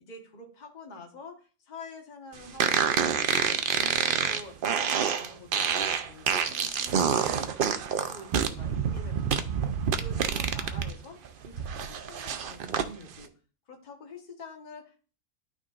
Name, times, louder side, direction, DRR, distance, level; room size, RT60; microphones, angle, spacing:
voice 1, 0.0-3.0 3.3-7.8 8.1-11.2 11.4-13.3 13.7-15.0, left 3 dB, 30° left, 2 dB, 1.2 m, -47 dB
sound 1, 2.6-10.9 11.3-12.9, right 7 dB, 75° right, 0.5 m, -27 dB
11.5 x 3.9 x 2.4 m, 0.37 s
omnidirectional pair, 1.6 m